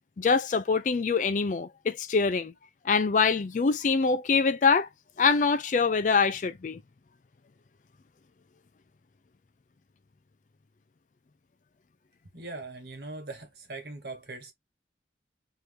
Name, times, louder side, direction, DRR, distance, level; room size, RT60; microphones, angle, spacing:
voice 1, 0.2-2.5 2.9-4.9 5.2-6.8, left 5 dB, 45° left, 0.4 m, -24 dB
voice 2, 12.3-14.5, right 2 dB, 60° right, 1.3 m, -40 dB
3.1 x 2.6 x 3.3 m
head